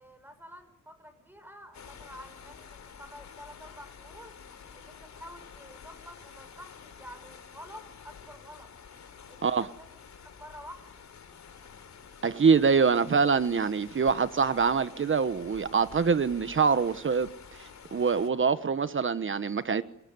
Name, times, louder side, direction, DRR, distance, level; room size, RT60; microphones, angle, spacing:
voice 1, 0.0-4.3 4.7-8.7 9.3-10.0 10.4-10.9, equal, 5° right, 6.9 m, -49 dB
sound 1, 1.7-18.3, left 7 dB, 65° left, 3.7 m, -50 dB
voice 2, 12.2-17.3 17.9-19.8, right 5 dB, 40° right, 1.2 m, -24 dB
25.5 x 21.0 x 9.6 m
cardioid pair, 95°, 30 cm